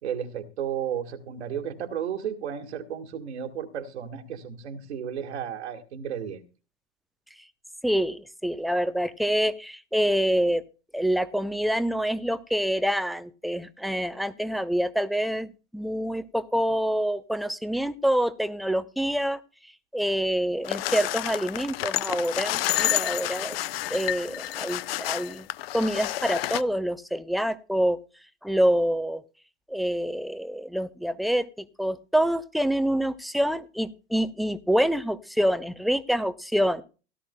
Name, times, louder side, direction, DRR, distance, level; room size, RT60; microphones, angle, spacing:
voice 1, 0.0-6.4, right 8 dB, 70° right, 3 dB, 1.8 m, -33 dB
voice 2, 7.8-10.6 10.9-15.5 15.7-19.4 19.9-23.6 23.9-25.5 25.7-28.0 28.4-29.2 29.7-31.5 31.8-36.8, equal, ahead, 13 dB, 0.6 m, -26 dB
sound 1, 20.6-26.6, left 15 dB, 55° left, 0.5 m, -29 dB
17.0 x 12.5 x 2.2 m, 0.34 s
figure-of-eight pair, 90°, 35 cm